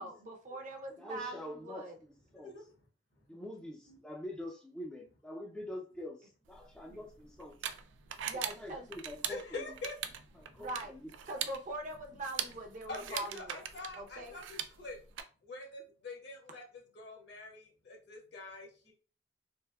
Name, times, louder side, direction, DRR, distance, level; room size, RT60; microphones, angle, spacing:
voice 1, 0.0-1.9 3.3-3.5 6.9-7.0 8.2-8.9 10.6-11.0 11.3-13.6 13.9-14.3, right 1 dB, 45° right, 0.6 m, -42 dB
voice 2, 1.0-1.9 2.3-2.5 3.3-7.6 8.3-9.7 10.4-11.1, left 1 dB, 5° left, 0.4 m, -45 dB
voice 3, 2.3-2.8 3.1-3.2 3.9-4.0 7.9-8.3 9.3-10.7 12.9-15.0 15.4-18.9, left 2 dB, 65° left, 1.2 m, -46 dB
sound 1, 6.5-15.2, right 9 dB, 90° right, 0.3 m, -42 dB
3.4 x 2.5 x 2.2 m
head